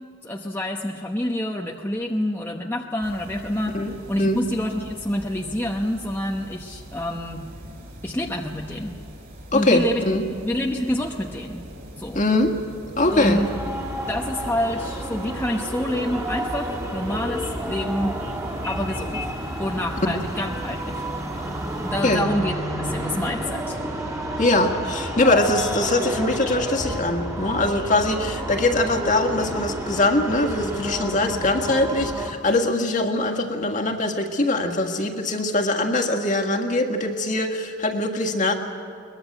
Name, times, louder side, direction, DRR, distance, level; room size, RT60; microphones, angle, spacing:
voice 1, 0.2-3.8 4.1-7.5 8.0-9.0 9.5-10.0 10.4-11.7 12.0-12.2 13.1-13.5 14.1-18.2 18.7-19.3 19.6-21.0 21.8-23.8, left 1 dB, 10° left, 0 dB, 0.9 m, -27 dB
sound 1, 3.0-22.0, equal, 45° right, 5.2 m, -42 dB
voice 2, 3.7-4.4 9.5-10.2 12.1-12.5 13.0-13.4 22.0-22.3 24.4-38.5, left 2 dB, 40° left, 4 dB, 1.9 m, -22 dB
sound 2, 13.0-32.3, right 1 dB, 15° right, 2.4 m, -30 dB
22.5 x 20.5 x 8.0 m, 2.5 s
head